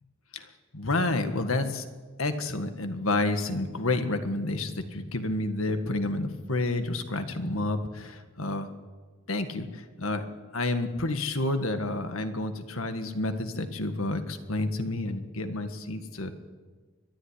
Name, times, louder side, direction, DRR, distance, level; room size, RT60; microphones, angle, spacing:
voice 1, 0.7-1.9 2.2-8.7 9.3-10.2 10.5-16.3, left 2 dB, 70° left, 8 dB, 1.7 m, -29 dB
22.5 x 11.5 x 10.0 m, 1.4 s
head